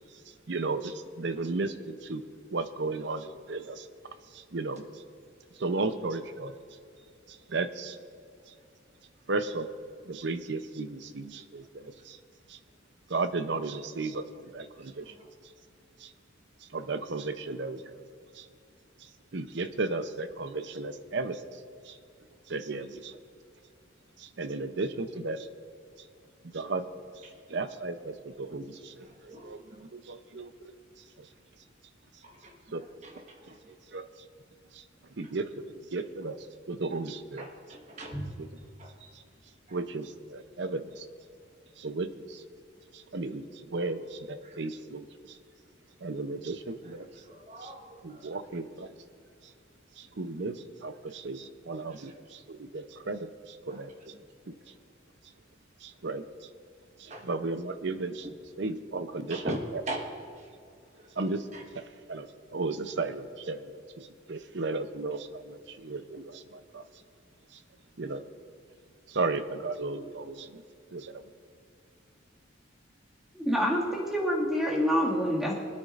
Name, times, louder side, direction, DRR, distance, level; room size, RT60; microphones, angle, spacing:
voice 1, 0.5-2.2 2.5-3.9 4.3-5.0 5.6-6.5 7.3-8.0 8.5-8.6 9.3-9.7 10.0-12.2 12.5-12.6 13.1-15.1 16.0-16.1 16.6-18.0 18.3-18.5 19.0-22.0 22.5-23.2 24.2-25.5 26.5-26.9 27.5-30.7 31.2-31.3 32.7-32.8 33.2-33.5 33.9-34.1 34.7-34.8 35.2-37.5 39.7-41.1 41.8-42.4 42.9-45.4 46.0-47.1 48.0-48.9 50.0-54.2 54.5-54.6 55.8-56.2 57.0-58.3 58.6-59.6 61.2-61.5 62.1-66.8 68.0-68.2 69.1-70.6 70.9-71.2, right 3 dB, 60° right, 10 dB, 0.6 m, -35 dB
voice 2, 14.8-15.4 27.2-27.4 29.0-29.9 32.2-33.8 36.9-37.0 37.4-39.1 39.7-39.8 43.8-43.9 44.4-44.6 46.8-47.0 47.2-48.3 51.1-51.2 51.9-52.1 53.7-53.8 54.1-54.3 57.1-57.3 58.2-58.3 59.3-60.5 60.9-61.1 61.5-61.7, right 1 dB, 35° right, 2 dB, 1.3 m, -42 dB
voice 3, 73.3-75.6, equal, ahead, -4 dB, 2.0 m, -27 dB
24.0 x 9.7 x 2.5 m, 2.3 s
head